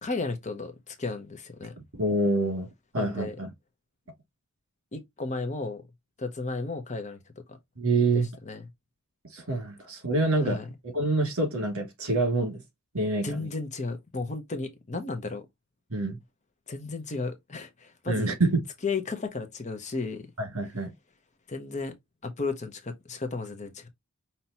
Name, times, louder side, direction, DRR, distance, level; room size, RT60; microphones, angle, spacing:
voice 1, 0.0-1.7 3.0-3.4 4.9-5.8 6.2-7.2 8.1-8.7 10.4-10.7 13.2-15.4 16.7-18.3 18.8-20.2 21.5-21.9 22.2-23.9, left 3 dB, 30° left, 0.8 m, -34 dB
voice 2, 1.9-3.5 7.8-8.3 9.3-10.6 10.9-12.6 12.9-13.4 15.9-16.2 18.1-18.6 20.4-20.9, right 2 dB, 70° right, 2.5 m, -26 dB
5.5 x 2.9 x 2.9 m
head